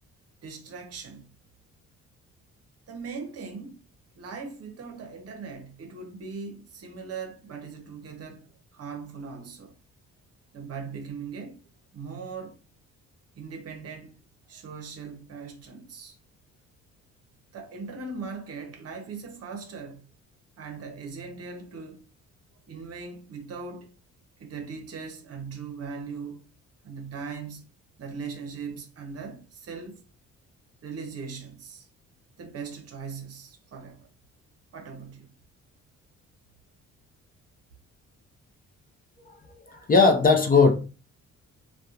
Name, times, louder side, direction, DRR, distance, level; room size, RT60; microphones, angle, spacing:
voice 1, 0.4-1.3 2.9-3.8 4.2-8.5 8.7-9.7 10.5-11.6 11.9-12.6 13.4-14.2 14.5-16.2 17.5-20.0 20.6-22.1 22.7-23.9 24.4-26.5 26.8-27.6 28.0-30.0 30.8-31.9 32.4-34.1 34.7-35.3, right 5 dB, 50° right, 0.7 m, -39 dB
voice 2, 39.7-40.7, left 4 dB, 30° left, 0.6 m, -18 dB
2.8 x 2.2 x 2.4 m
cardioid pair, 90°, 30 cm